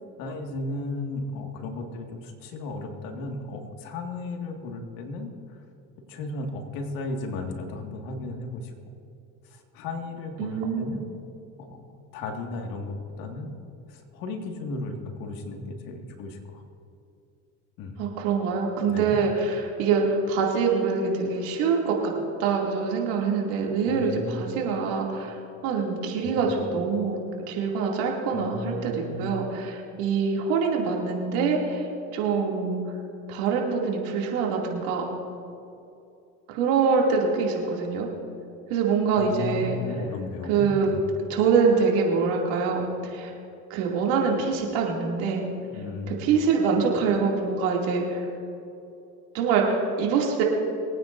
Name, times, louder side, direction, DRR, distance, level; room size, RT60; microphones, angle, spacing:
voice 1, 0.2-5.6 6.1-8.7 9.4-11.1 11.6-13.6 13.9-16.6 17.8-18.0 18.9-19.2 23.9-24.6 26.2-26.7 28.3-29.3 39.2-41.0 45.7-46.2, left 2 dB, 70° left, 3 dB, 2.0 m, -35 dB
voice 2, 10.4-11.0 18.0-22.1 22.4-27.2 27.5-31.8 32.1-32.8 33.3-35.1 36.5-38.1 38.7-39.8 40.5-40.9 41.3-43.3 43.7-45.5 46.1-48.3 49.3-50.4, right 5 dB, 80° right, -1 dB, 2.6 m, -25 dB
23.0 x 9.3 x 2.6 m, 2.6 s
supercardioid pair, 85°, 35 cm